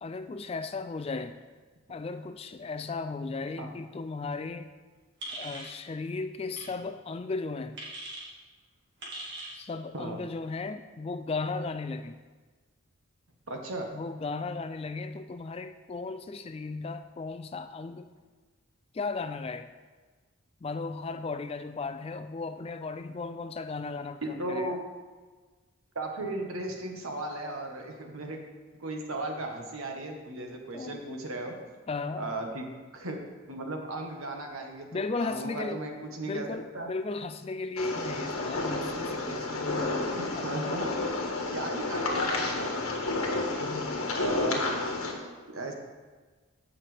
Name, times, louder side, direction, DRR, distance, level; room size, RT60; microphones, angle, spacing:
voice 1, 0.0-1.4 1.9-4.7 5.3-7.8 9.5-12.2 13.9-18.1 18.9-19.7 20.6-24.8 30.7-31.0 31.9-32.3 34.9-35.8 36.2-40.8 43.6-44.1, left 3 dB, 25° left, 10 dB, 0.3 m, -36 dB
sound 1, 5.2-5.7 6.5-6.7 7.8-8.3 9.0-9.6, right 1 dB, 50° right, 2.1 m, -40 dB
voice 2, 13.5-13.9 24.2-24.8 25.9-28.4 28.8-31.6 32.2-32.7 32.9-33.2 33.5-36.5 36.7-36.9 40.1-40.9 41.5-43.0 44.1-44.7 45.5-45.7, right 2 dB, 75° right, 2 dB, 1.4 m, -36 dB
sound 2, 37.8-45.1, left 2 dB, 85° left, 1.4 m, -31 dB
15.0 x 5.7 x 3.4 m, 1.4 s
head